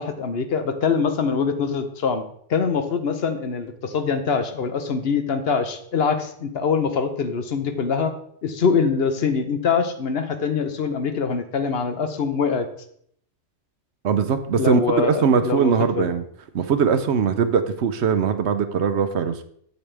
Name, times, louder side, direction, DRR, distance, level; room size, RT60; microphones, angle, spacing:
voice 1, 0.0-2.2 2.5-8.1 8.4-12.7 14.6-16.1, left 5 dB, 60° left, 8 dB, 1.0 m, -24 dB
voice 2, 14.0-16.2 16.5-19.4, right 6 dB, 70° right, 10 dB, 0.9 m, -21 dB
8.1 x 7.7 x 3.3 m, 0.65 s
omnidirectional pair, 1.2 m